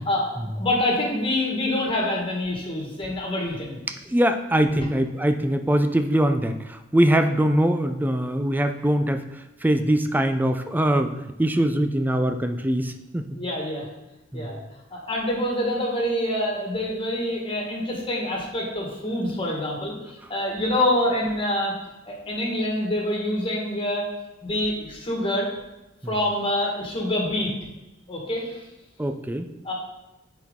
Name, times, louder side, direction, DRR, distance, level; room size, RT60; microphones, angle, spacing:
voice 1, 0.0-3.8 4.8-4.9 13.4-13.9 14.3-14.6 14.9-21.7 22.0-24.1 24.4-25.5 26.1-27.5 28.1-28.6 29.6-29.7, left 1 dB, 25° left, -1 dB, 1.7 m, -26 dB
voice 2, 4.1-9.2 9.6-13.4 14.3-14.5 26.0-26.1 29.0-29.5, right 1 dB, 10° right, 8 dB, 0.4 m, -22 dB
9.2 x 4.6 x 3.7 m, 0.97 s
head